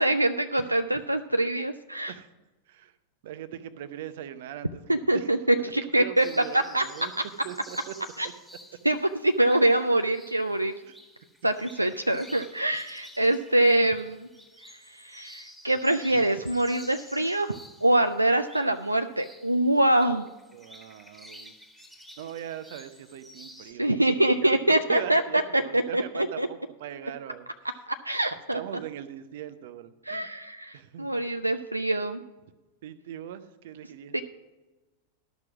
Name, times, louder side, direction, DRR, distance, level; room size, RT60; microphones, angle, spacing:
voice 1, 0.0-2.1 4.9-7.2 8.2-8.3 8.8-10.7 11.4-14.3 14.7-17.5 17.8-20.2 23.8-26.5 27.9-28.6 30.1-32.2 34.1-34.2, right 1 dB, 85° right, 8 dB, 0.4 m, -24 dB
voice 2, 3.2-4.9 5.1-5.3 5.6-7.1 7.4-7.9 10.9-11.0 20.5-21.5 22.2-24.0 24.4-24.6 24.9-27.5 28.5-30.3 30.7-31.1 32.8-34.1, right 11 dB, 55° right, 12 dB, 0.7 m, -40 dB
sound 1, 6.2-23.7, equal, ahead, 1.7 m, -50 dB
12.0 x 6.1 x 6.0 m, 1.2 s
figure-of-eight pair, 90°, 0 cm